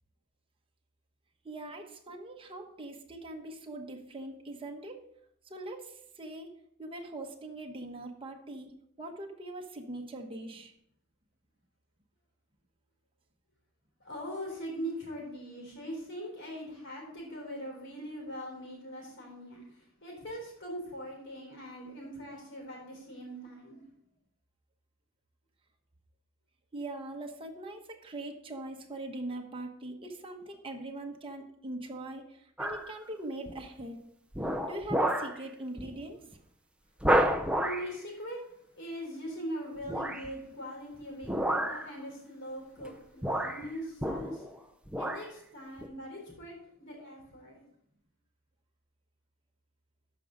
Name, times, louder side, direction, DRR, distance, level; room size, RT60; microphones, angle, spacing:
voice 1, 1.4-5.0 5.5-6.5 6.8-10.7 26.7-34.0 34.6-36.3, right 2 dB, 25° right, 2 dB, 1.0 m, -42 dB
voice 2, 14.0-23.8 37.6-38.4 38.8-44.5 45.0-47.6, equal, 55° left, 0 dB, 3.8 m, -41 dB
sound 1, 32.6-32.9 33.5-33.8 34.3-35.4 35.8-36.0 36.3-36.4 37.0-37.9 39.8-40.3 41.2-41.9 42.8-42.9 43.2-44.6 44.9-45.3 45.8-45.9, right 1 dB, 5° right, 0.5 m, -30 dB
13.0 x 5.2 x 3.8 m, 0.72 s
head